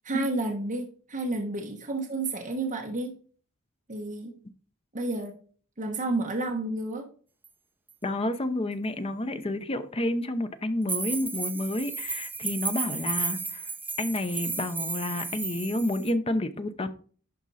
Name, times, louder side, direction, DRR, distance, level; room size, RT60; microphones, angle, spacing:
voice 1, 0.0-3.1 3.9-4.4 4.9-5.4 5.8-7.1, right 2 dB, 35° right, 1.2 m, -31 dB
sound 1, 7.4-7.5 7.9-8.0 10.9-16.1, right 4 dB, 10° right, 0.6 m, -33 dB
voice 2, 8.0-13.7 14.0-16.9, left 1 dB, 25° left, 0.7 m, -30 dB
11.5 x 4.4 x 4.1 m
head